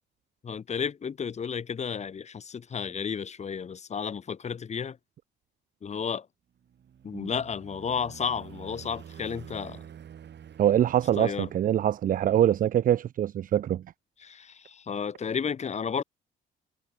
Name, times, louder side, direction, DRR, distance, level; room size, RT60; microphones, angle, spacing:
voice 1, 0.4-5.0 5.8-6.3 7.0-9.8 11.2-11.5 14.2-16.0, left 6 dB, 35° left, 0.7 m, -32 dB
sound 1, 6.6-12.4, right 9 dB, 60° right, 7.2 m, -48 dB
voice 2, 10.6-13.8, right 11 dB, 45° right, 0.4 m, -24 dB
cardioid pair, 90°, 20 cm